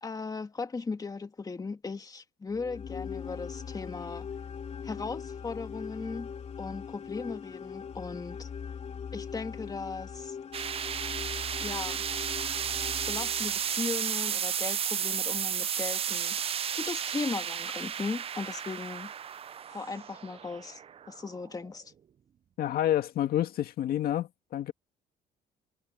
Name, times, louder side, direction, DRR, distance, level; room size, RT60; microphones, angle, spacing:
voice 1, 0.0-4.3 4.8-6.3 6.6-8.5 9.1-10.4 11.6-12.0 13.1-16.4 16.7-19.1 19.7-20.8 21.1-21.9, left 4 dB, 20° left, 2.0 m, -37 dB
sound 1, 2.5-13.8, left 7 dB, 40° left, 2.7 m, -41 dB
sound 2, 10.5-21.7, right 8 dB, 35° right, 0.5 m, -33 dB
voice 2, 22.6-24.7, left 12 dB, 65° left, 1.9 m, -29 dB
cardioid pair, 110°, 17 cm